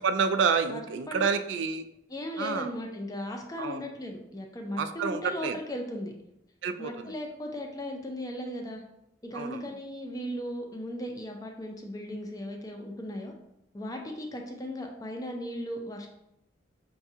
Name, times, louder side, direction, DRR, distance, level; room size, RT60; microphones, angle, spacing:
voice 1, 0.0-1.9 2.4-2.7 3.6-3.8 4.8-5.5 6.6-6.9 9.3-9.6, right 5 dB, 75° right, 9 dB, 0.3 m, -28 dB
voice 2, 0.7-1.3 2.1-6.1 6.8-8.8 9.2-13.3 13.7-16.1, left 1 dB, 20° left, 2 dB, 0.5 m, -37 dB
5.8 x 2.3 x 2.7 m, 0.81 s
head